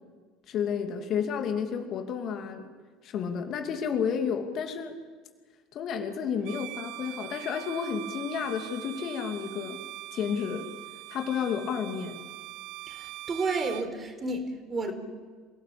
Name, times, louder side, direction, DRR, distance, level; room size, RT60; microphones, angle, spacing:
voice 1, 0.5-2.7 3.0-5.0 5.7-9.8 10.1-10.7 11.1-12.2, left 7 dB, 45° left, 5 dB, 2.6 m, -31 dB
Bowed string instrument, 6.4-13.9, right 18 dB, 60° right, 0.9 m, -42 dB
voice 2, 12.9-14.9, right 3 dB, 25° right, 7 dB, 4.2 m, -31 dB
27.5 x 18.0 x 8.6 m, 1.5 s
figure-of-eight pair, 65°, 0 cm